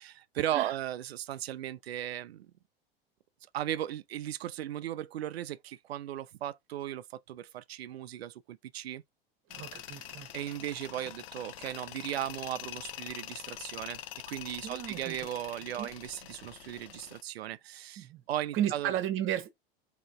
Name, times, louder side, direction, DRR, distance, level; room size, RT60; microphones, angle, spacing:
voice 1, 0.3-2.5 3.5-9.0 10.3-14.0 14.3-18.9, right 12 dB, 80° right, 0.4 m, -37 dB
Tools, 9.5-17.2, left 12 dB, 65° left, 0.6 m, -45 dB
voice 2, 9.5-10.3 14.6-15.3 15.8-15.9 18.0-18.2 18.5-19.5, right 11 dB, 40° right, 1.1 m, -34 dB
3.9 x 2.9 x 3.3 m
hypercardioid pair, 80°, 31 cm